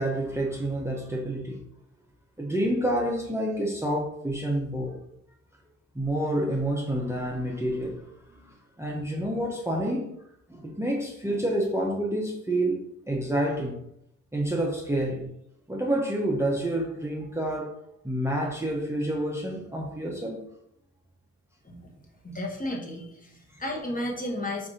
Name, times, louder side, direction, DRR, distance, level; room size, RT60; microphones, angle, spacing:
voice 1, 0.0-1.6 2.4-4.9 5.9-10.1 10.5-13.8 14.3-15.3 15.7-17.7 18.0-20.4 22.6-22.8, right 1 dB, 10° right, -2 dB, 0.7 m, -28 dB
voice 2, 22.2-24.7, left 1 dB, 25° left, -1 dB, 1.1 m, -33 dB
4.7 x 2.7 x 3.7 m, 0.76 s
cardioid pair, 90°, 32 cm